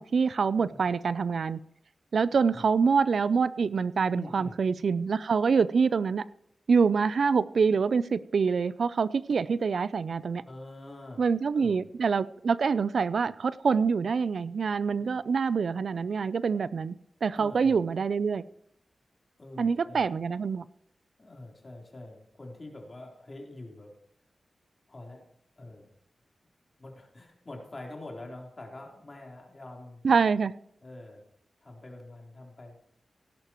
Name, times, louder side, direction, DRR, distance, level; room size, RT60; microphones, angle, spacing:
voice 1, 0.0-1.6 2.1-6.2 6.7-10.4 11.2-16.9 17.2-18.4 19.6-20.6 30.0-30.5, right 5 dB, 75° right, 17 dB, 0.4 m, -25 dB
voice 2, 4.1-4.6 10.4-11.2 11.5-11.9 17.4-17.8 19.4-20.1 21.2-23.9 24.9-25.9 26.8-30.2 30.8-31.2 31.6-32.8, left 2 dB, 35° left, 0 dB, 3.6 m, -45 dB
16.5 x 11.5 x 3.0 m, 0.72 s
wide cardioid pair, 75°, 0 cm